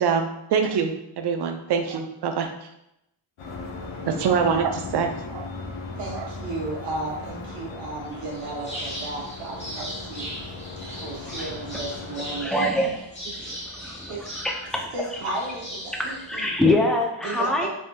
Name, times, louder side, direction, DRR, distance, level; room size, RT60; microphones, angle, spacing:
voice 1, 0.0-2.5 4.1-5.5 6.1-6.3, right 6 dB, 55° right, 5 dB, 0.5 m, -24 dB
sound 1, 3.4-12.4, left 3 dB, 70° left, 0.7 m, -37 dB
voice 2, 6.0-10.6 11.0-12.7 14.1-14.2 14.9-16.5 17.2-17.7, right 2 dB, 90° right, -3 dB, 0.8 m, -34 dB
sound 2, 8.1-17.0, equal, 20° left, 1.0 m, -39 dB
voice 3, 12.4-13.0 13.4-13.5 13.8-14.9 15.3-15.4 16.0-17.7, left 1 dB, ahead, 1 dB, 0.3 m, -24 dB
3.4 x 2.6 x 2.2 m, 0.83 s
cardioid pair, 70°, 50 cm